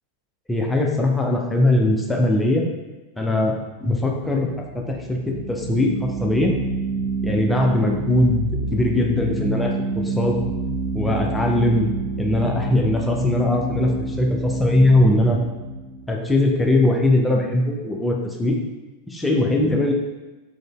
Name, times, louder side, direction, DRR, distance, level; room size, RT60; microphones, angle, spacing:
voice 1, 0.5-2.6 3.2-6.5 7.2-10.4 10.9-11.9 12.2-15.4 16.1-18.6 19.1-19.9, left 1 dB, 10° left, 1 dB, 0.4 m, -20 dB
sound 1, 4.4-17.3, right 2 dB, 85° right, 0.4 m, -28 dB
3.7 x 2.0 x 2.2 m, 1.2 s
figure-of-eight pair, 90°, 0 cm